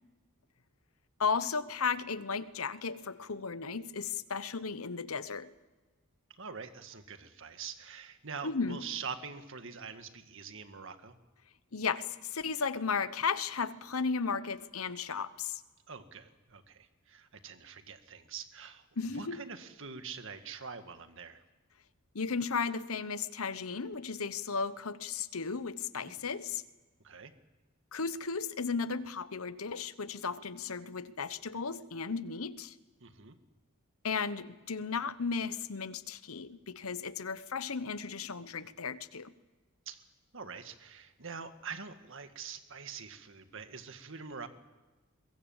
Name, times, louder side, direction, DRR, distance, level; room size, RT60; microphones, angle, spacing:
voice 1, 1.2-5.5 8.4-8.8 11.7-15.6 19.0-19.4 22.1-26.6 27.9-32.7 34.0-39.3, left 5 dB, 80° left, 1.0 m, -35 dB
voice 2, 6.3-11.2 15.9-18.9 19.1-21.4 26.0-26.2 27.0-27.3 33.0-33.4 39.9-40.0 40.3-44.5, right 5 dB, 65° right, 1.8 m, -44 dB
23.0 x 22.0 x 7.3 m
head